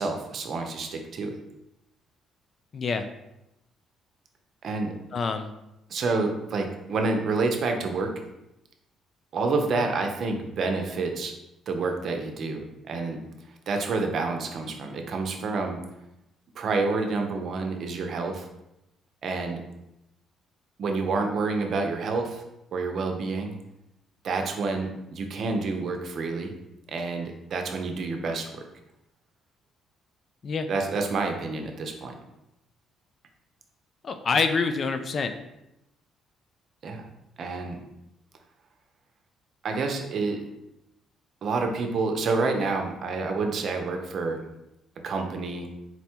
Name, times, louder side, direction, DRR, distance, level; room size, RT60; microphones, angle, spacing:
voice 1, 0.0-1.3 4.6-4.9 5.9-8.1 9.3-11.3 11.7-13.2 13.7-15.8 16.6-18.5 19.2-19.6 20.8-22.4 22.7-23.6 24.2-26.5 26.9-28.6 30.7-32.1 36.8-37.1 37.4-37.8 39.6-40.4 41.4-44.4 45.0-45.7, right 3 dB, 60° right, 4 dB, 0.6 m, -28 dB
voice 2, 2.7-3.1 5.1-5.5 30.4-30.7 34.0-35.3, left 4 dB, 45° left, 8 dB, 0.4 m, -26 dB
4.1 x 2.2 x 4.4 m, 0.88 s
cardioid pair, 100°, 0 cm